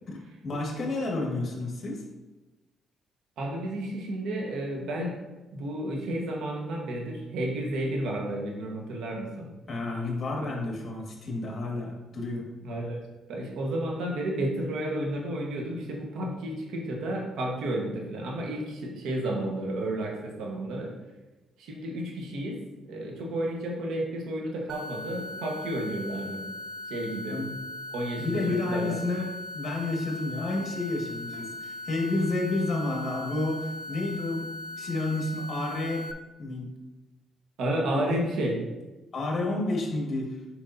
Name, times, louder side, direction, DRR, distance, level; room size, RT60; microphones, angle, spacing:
voice 1, 0.1-2.0 9.7-12.4 27.3-27.5 28.2-29.3 29.5-34.5 34.8-36.1 36.4-36.7 37.9-38.2 39.1-40.4, left 2 dB, 45° left, -1 dB, 1.9 m, -30 dB
voice 2, 3.4-5.1 5.5-9.5 12.6-13.0 13.3-20.9 21.6-22.6 22.9-26.4 26.9-27.4 27.9-28.9 31.3-31.4 37.6-38.6, right 1 dB, 80° right, 0 dB, 1.4 m, -32 dB
sound 1, 24.7-36.1, left 2 dB, 50° right, 0.5 m, -39 dB
7.1 x 5.4 x 2.8 m, 1.1 s
cardioid pair, 90°, 0 cm